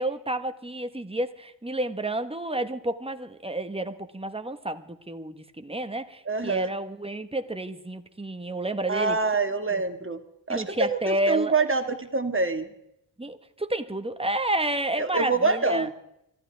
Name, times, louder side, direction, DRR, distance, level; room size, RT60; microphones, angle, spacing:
voice 1, 0.0-9.2 9.7-9.8 10.5-11.6 13.2-15.9, right 1 dB, 10° right, 8 dB, 1.3 m, -30 dB
voice 2, 6.3-6.7 8.9-10.2 10.5-12.7 15.0-15.9, right 3 dB, 30° right, 7 dB, 1.8 m, -25 dB
24.5 x 14.0 x 3.5 m, 0.79 s
cardioid pair, 70°, 45 cm